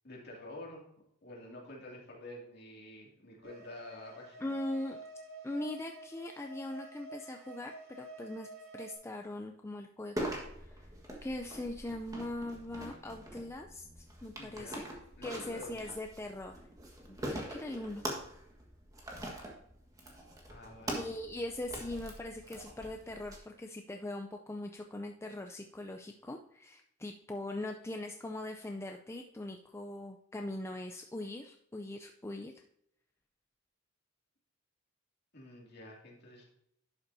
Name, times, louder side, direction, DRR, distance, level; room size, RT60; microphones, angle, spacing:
voice 1, 0.0-0.8 1.2-4.5 14.4-14.9 15.2-15.9 20.5-21.1 35.3-36.4, left 1 dB, 50° left, -2 dB, 2.5 m, -48 dB
sound 1, 3.4-9.0, right 2 dB, 65° right, 3.6 m, -49 dB
voice 2, 4.4-5.0 5.4-8.5 8.7-10.9 11.2-14.9 15.2-16.6 17.1-18.0 20.9-32.6, left 1 dB, 10° left, 4 dB, 0.4 m, -41 dB
sound 2, 10.2-23.4, right 1 dB, 15° right, 1.5 m, -43 dB
11.0 x 6.9 x 2.7 m, 0.73 s
head